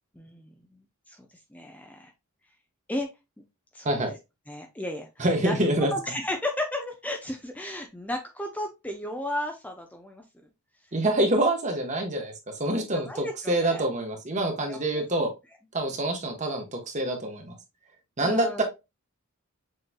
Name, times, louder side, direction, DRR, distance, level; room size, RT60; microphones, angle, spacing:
voice 1, 0.1-1.2 1.5-2.1 2.9-3.1 3.7-4.0 4.5-5.6 5.9-10.2 12.7-13.9 14.7-15.0 18.2-18.6, left 1 dB, 5° left, 3 dB, 0.5 m, -34 dB
voice 2, 5.2-5.9 10.9-12.3 12.6-15.3 15.7-17.5 18.2-18.6, right 1 dB, 35° right, 4 dB, 1.0 m, -26 dB
6.4 x 3.1 x 2.2 m, 0.24 s
head